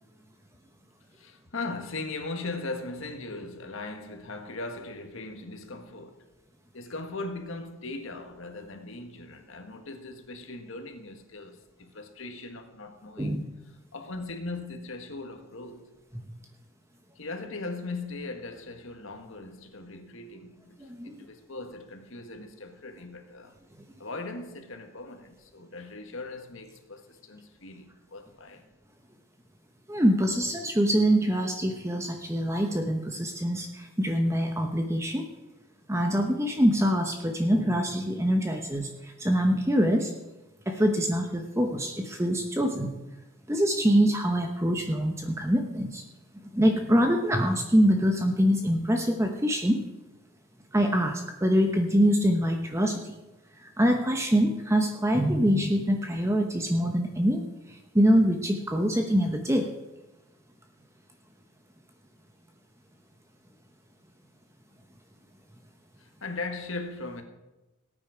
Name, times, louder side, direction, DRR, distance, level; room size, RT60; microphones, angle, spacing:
voice 1, 1.1-6.2 6.7-13.4 13.9-15.9 17.2-23.6 24.0-28.7 66.0-67.2, left 3 dB, 65° left, 1.6 m, -39 dB
voice 2, 20.8-21.2 29.9-35.2 35.9-40.1 40.7-42.9 43.5-46.0 46.5-49.8 50.7-53.2 53.6-59.7, equal, 15° right, 0.9 m, -24 dB
18.5 x 8.9 x 5.0 m
head